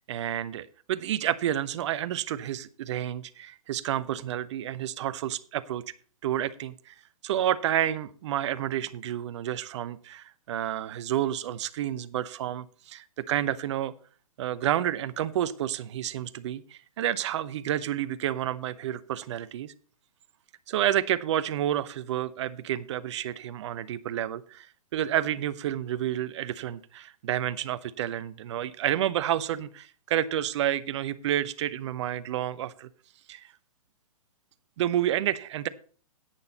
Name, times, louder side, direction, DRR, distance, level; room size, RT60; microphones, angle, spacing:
voice 1, 0.1-5.8 6.2-6.9 7.2-13.9 14.4-19.7 20.7-24.7 24.9-32.9 33.3-33.5 34.8-35.7, right 11 dB, 50° right, 15 dB, 0.8 m, -30 dB
11.0 x 9.1 x 4.0 m, 0.43 s
hypercardioid pair, 125°, 19 cm